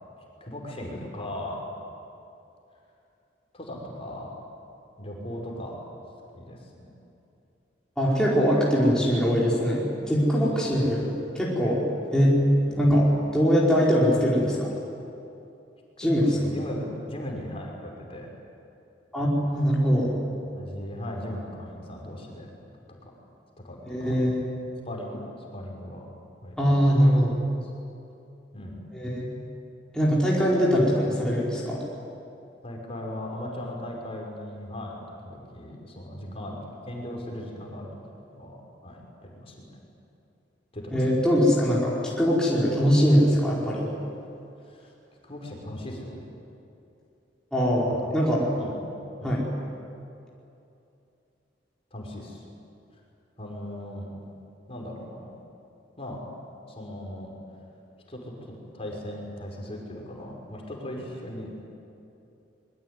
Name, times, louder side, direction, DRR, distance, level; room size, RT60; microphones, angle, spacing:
voice 1, 0.4-1.6 3.5-4.3 5.0-5.8 6.3-6.9 10.4-11.0 12.7-12.8 16.0-18.3 20.5-22.5 23.0-23.1 23.6-24.1 24.8-25.2 25.5-26.1 26.4-27.0 27.6-27.7 28.5-28.8 32.6-35.0 35.2-37.9 38.3-38.6 38.8-39.7 40.7-41.3 44.6-44.9 45.2-46.1 48.0-48.1 48.6-48.8 49.2-49.4 51.9-52.5 53.4-54.1 54.7-55.3 56.0-56.2 56.7-57.3 58.1-61.6, left 1 dB, 35° left, -1 dB, 5.6 m, -38 dB
voice 2, 8.0-11.1 11.3-11.8 12.1-12.4 12.7-13.1 13.3-14.7 16.0-16.3 19.1-20.1 23.9-24.5 26.6-27.4 28.9-29.3 29.9-31.8 40.9-43.9 47.5-48.5 49.2-49.4, equal, 5° left, -6 dB, 4.9 m, -22 dB
25.0 x 23.0 x 9.8 m, 2.7 s
head